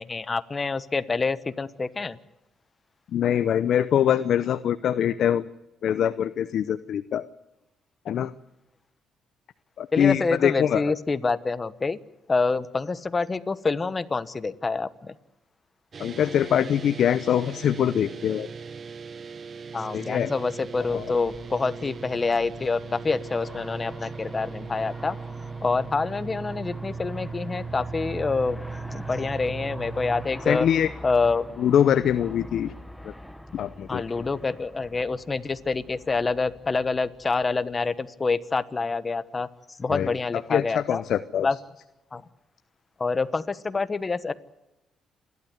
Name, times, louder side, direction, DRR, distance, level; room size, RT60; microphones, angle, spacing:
voice 1, 0.0-2.2 9.9-12.0 12.3-15.1 19.7-25.2 25.6-28.6 28.9-30.7 31.0-31.5 33.9-39.5 39.8-41.0 41.4-41.6 42.1-42.2 43.0-44.3, left 4 dB, 30° left, 14 dB, 1.1 m, -27 dB
voice 2, 3.1-5.5 5.8-7.2 8.1-8.3 9.8-10.8 16.0-18.5 19.9-20.3 20.9-21.1 30.5-30.9 31.6-32.7 33.0-33.1 33.5-34.3 39.9-40.1 40.5-41.5, left 9 dB, 70° left, 13 dB, 0.7 m, -23 dB
Dist Chr Gmin, 15.9-30.3, right 5 dB, 45° right, 0.8 m, -38 dB
Aircraft, 20.5-37.8, left 1 dB, 5° left, 1.2 m, -44 dB
29.0 x 12.5 x 9.6 m, 0.98 s
cardioid pair, 90°, 0 cm